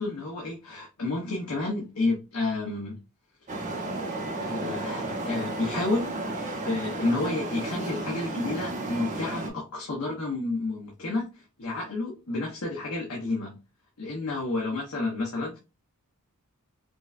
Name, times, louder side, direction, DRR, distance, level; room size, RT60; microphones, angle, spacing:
voice 1, 0.0-3.0 4.4-13.6 14.0-15.6, left 2 dB, 70° left, -1 dB, 0.9 m, -30 dB
Traffic noise roadway noise, 3.5-9.5, right 2 dB, 35° right, 0.7 m, -33 dB
5.0 x 2.1 x 2.5 m, 0.27 s
head